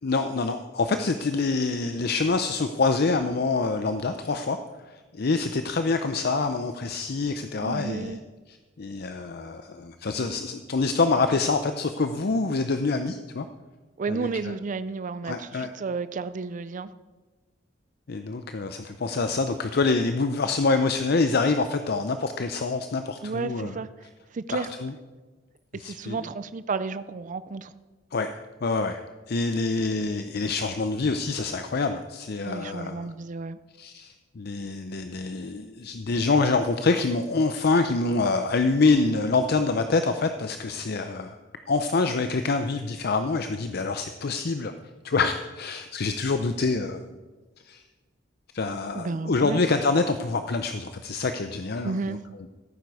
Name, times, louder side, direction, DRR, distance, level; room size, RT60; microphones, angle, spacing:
voice 1, 0.0-4.6 4.9-8.2 8.5-13.5 14.1-14.5 15.2-15.7 18.1-23.8 24.5-24.9 25.7-26.2 28.1-29.0 29.3-33.1 33.8-41.4 41.7-44.7 45.0-47.0 47.6-47.8 48.5-52.2, left 3 dB, 55° left, 8 dB, 0.6 m, -26 dB
voice 2, 7.6-8.2 14.0-16.9 23.2-23.9 24.3-24.7 25.8-27.7 32.4-33.6 48.9-49.6 51.8-52.2, right 4 dB, 45° right, 14 dB, 0.4 m, -32 dB
16.0 x 9.2 x 4.8 m, 1.3 s
head